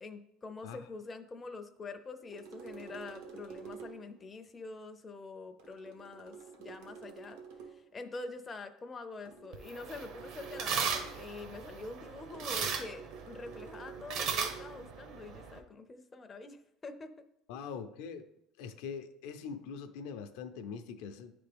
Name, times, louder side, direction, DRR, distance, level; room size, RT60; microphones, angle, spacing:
voice 1, 0.0-7.4 7.7-17.1, left 3 dB, 20° left, 7 dB, 0.4 m, -45 dB
sound 1, 2.3-4.2 5.6-7.9 9.3-11.3 12.3-14.8, right 6 dB, 85° right, 1.0 m, -50 dB
sound 2, 9.5-15.6, right 6 dB, 55° right, 0.7 m, -38 dB
voice 2, 17.5-18.3 18.6-21.3, left 6 dB, 80° left, 8 dB, 0.5 m, -42 dB
9.7 x 3.4 x 3.4 m, 0.80 s
cardioid pair, 140°, 0 cm